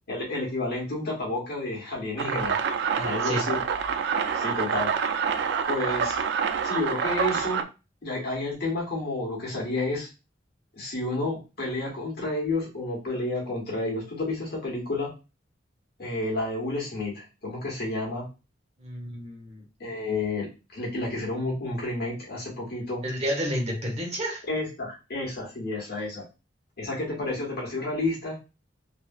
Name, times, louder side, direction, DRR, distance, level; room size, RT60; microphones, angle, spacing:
voice 1, 0.1-2.6 3.0-3.6 4.3-4.9 5.7-6.2 6.6-7.6 8.0-10.1 10.7-15.1 16.0-18.3 19.8-23.0 24.5-26.2 26.8-28.4, left 2 dB, 60° left, -3 dB, 1.3 m, -30 dB
sound 1, 2.2-7.6, right 6 dB, 65° right, 0.3 m, -27 dB
voice 2, 3.0-3.4 18.8-19.6 23.0-24.4, equal, 35° right, -1 dB, 1.0 m, -31 dB
3.1 x 2.7 x 2.3 m, 0.30 s
head